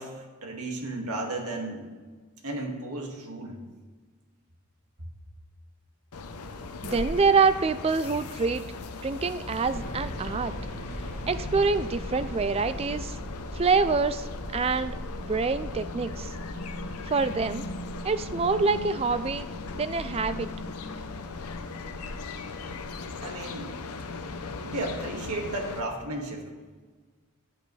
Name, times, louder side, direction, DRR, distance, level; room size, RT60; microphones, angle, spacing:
voice 1, 0.0-1.9 2.4-3.6 23.2-23.7 24.6-26.5, right 2 dB, 85° right, 1 dB, 2.0 m, -34 dB
sound 1, 6.1-25.8, left 3 dB, 90° left, 0.8 m, -38 dB
voice 2, 6.8-8.6 9.0-10.5 11.3-13.2 13.5-14.3 14.5-16.3 17.1-17.7 18.0-19.5 19.7-20.5, right 4 dB, 25° right, 13 dB, 0.3 m, -26 dB
sound 2, 9.6-19.5, equal, 35° left, 2.0 m, -40 dB
15.5 x 8.4 x 3.3 m, 1.4 s
head